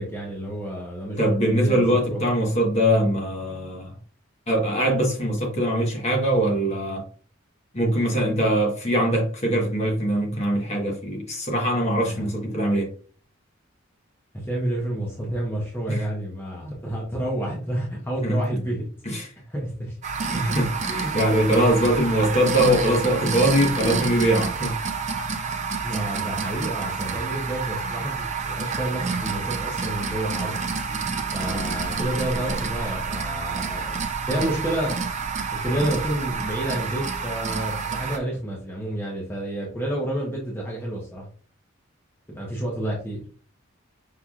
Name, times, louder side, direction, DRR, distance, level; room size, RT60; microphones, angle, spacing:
voice 1, 0.0-2.2 12.0-12.3 14.3-18.9 19.5-20.0 20.5-20.6 25.8-30.6 31.3-33.9 34.3-35.0 35.6-41.3 42.3-43.2, right 1 dB, 10° left, 0.9 m, -29 dB
voice 2, 1.2-3.9 4.5-7.0 7.7-12.9 15.9-16.1 18.2-18.4 19.0-19.3 20.3-24.8 31.4-31.6, right 1 dB, 30° left, 1.2 m, -22 dB
sound 1, 20.0-38.2, right 5 dB, 35° right, 0.5 m, -29 dB
5.7 x 3.3 x 2.4 m
head